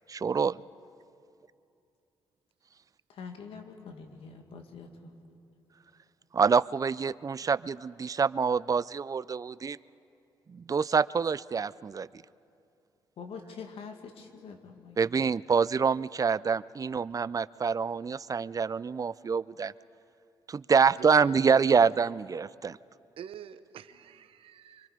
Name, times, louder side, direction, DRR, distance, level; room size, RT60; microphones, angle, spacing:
voice 1, 0.1-0.6 6.3-9.8 10.5-12.1 15.0-19.7 20.5-22.8, right 5 dB, 35° right, 19 dB, 0.4 m, -26 dB
voice 2, 3.1-5.1 13.2-15.0, left 5 dB, 75° left, 4 dB, 2.2 m, -45 dB
voice 3, 20.9-21.9 23.2-24.9, right 9 dB, 75° right, 12 dB, 0.8 m, -45 dB
25.5 x 24.0 x 5.1 m, 2.6 s
supercardioid pair, 60°, 10 cm